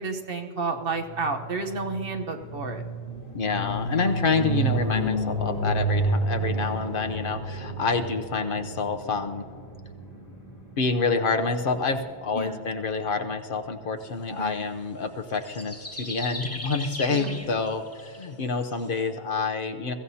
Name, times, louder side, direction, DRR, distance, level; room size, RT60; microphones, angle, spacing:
voice 1, 0.0-2.8 4.9-5.1 12.3-12.7 14.3-14.6 17.1-17.5, right 3 dB, 60° right, 4 dB, 1.3 m, -31 dB
sound 1, 1.0-10.9, right 2 dB, 35° left, 3.5 m, -30 dB
voice 2, 3.3-9.4 10.8-19.9, left 4 dB, 60° left, 7 dB, 0.9 m, -28 dB
sound 2, 15.3-19.0, left 1 dB, 15° left, 1.0 m, -38 dB
22.5 x 15.5 x 2.8 m, 2.2 s
omnidirectional pair, 1.1 m